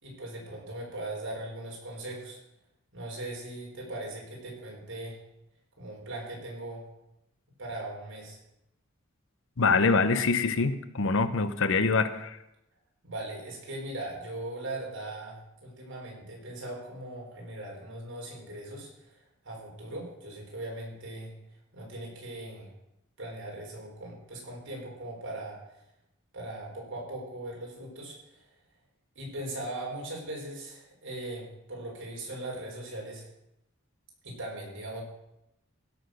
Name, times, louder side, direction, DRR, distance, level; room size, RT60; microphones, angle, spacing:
voice 1, 0.0-2.4 2.9-5.2 5.8-6.9 7.6-8.4 13.0-21.3 21.7-22.7 23.2-25.6 26.3-28.4 29.1-33.3 34.2-35.0, right 1 dB, 60° right, -2 dB, 4.6 m, -39 dB
voice 2, 9.6-12.4, left 4 dB, 65° left, 12 dB, 0.8 m, -25 dB
16.0 x 6.4 x 6.5 m, 0.87 s
head